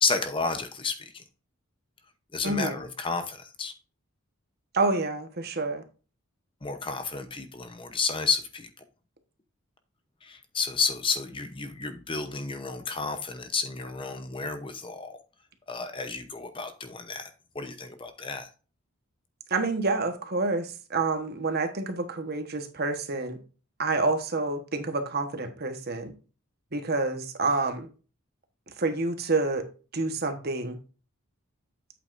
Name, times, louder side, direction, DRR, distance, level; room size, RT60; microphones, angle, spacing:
voice 1, 0.0-1.2 2.3-3.7 6.6-8.7 10.2-15.2 15.7-17.3 17.5-18.5, left 4 dB, 25° left, 8 dB, 0.8 m, -31 dB
voice 2, 2.4-2.8 4.7-5.8 19.5-23.4 23.8-26.1 26.7-27.9 28.8-29.7 29.9-30.8, right 3 dB, 45° right, 7 dB, 1.2 m, -28 dB
8.3 x 7.7 x 2.6 m, 0.35 s
head